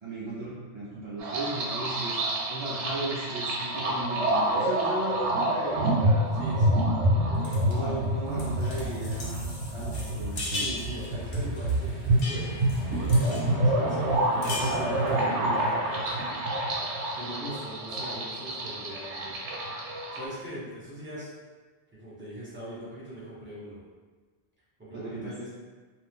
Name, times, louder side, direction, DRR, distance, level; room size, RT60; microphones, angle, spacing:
voice 1, 0.0-2.2 2.5-6.3 7.7-10.7 14.6-15.6 24.9-25.4, right 2 dB, 50° right, -8 dB, 0.3 m, -36 dB
sound 1, 1.2-20.2, right 1 dB, 80° right, 0.9 m, -27 dB
voice 2, 3.8-4.3 6.4-8.2 10.6-12.6 12.9-19.3 20.1-21.3 21.9-23.8 24.8-25.5, equal, 10° right, -9 dB, 1.0 m, -42 dB
sound 2, 7.4-7.8 8.3-13.5 13.9-14.0 14.2-15.2, left 2 dB, 80° left, 1.1 m, -38 dB
sound 3, 9.7-17.4, equal, 40° left, 0.9 m, -45 dB
2.6 x 2.3 x 3.5 m, 1.4 s
omnidirectional pair, 1.2 m